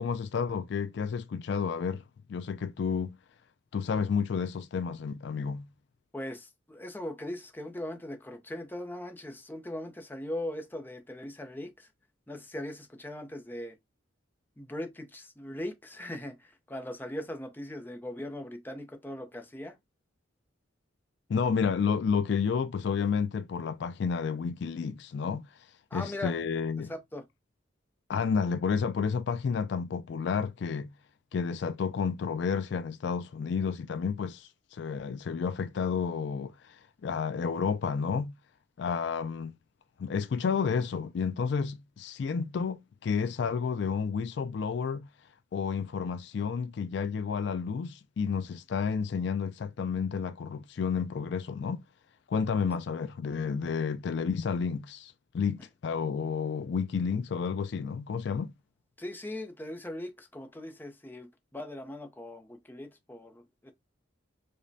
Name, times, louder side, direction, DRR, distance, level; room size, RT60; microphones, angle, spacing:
voice 1, 0.0-2.0 2.3-3.2 3.7-5.7 21.3-25.5 25.9-26.9 28.1-30.9 31.3-38.4 38.8-39.5 40.0-45.1 45.5-51.8 52.3-58.5, left 6 dB, 60° left, 0.3 m, -31 dB
voice 2, 6.1-11.9 12.3-13.8 14.6-19.8 25.9-26.4 26.8-27.3 52.7-52.8 59.0-63.7, left 1 dB, 10° left, 0.5 m, -40 dB
5.0 x 2.2 x 2.6 m
head